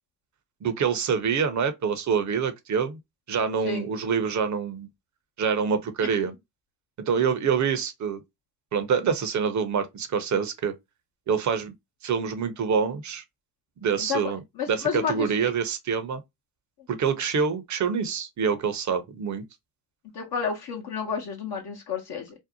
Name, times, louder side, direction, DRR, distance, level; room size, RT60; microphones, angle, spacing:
voice 1, 0.6-3.0 3.3-4.9 5.4-6.3 7.1-8.2 8.7-10.7 11.3-11.7 12.0-13.2 13.8-14.4 14.7-16.2 16.9-19.4, right 6 dB, 35° right, 0.7 m, -26 dB
voice 2, 6.0-6.4 14.0-15.5 20.1-22.3, left 6 dB, 50° left, 0.8 m, -31 dB
2.7 x 2.0 x 2.6 m
hypercardioid pair, 55°, 49 cm